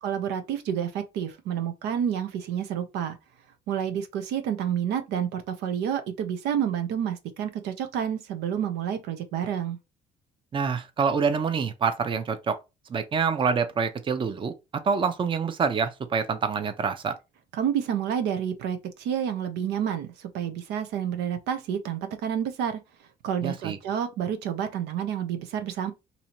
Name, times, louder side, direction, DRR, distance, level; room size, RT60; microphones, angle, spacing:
voice 1, 0.0-3.2 3.7-9.8 17.5-22.8 23.2-25.9, right 9 dB, 85° right, 0.7 m, -29 dB
voice 2, 10.5-12.6 12.9-14.5 14.8-17.1 23.4-23.8, right 5 dB, 30° right, 0.6 m, -26 dB
2.7 x 2.7 x 4.3 m
cardioid pair, 110°, 17 cm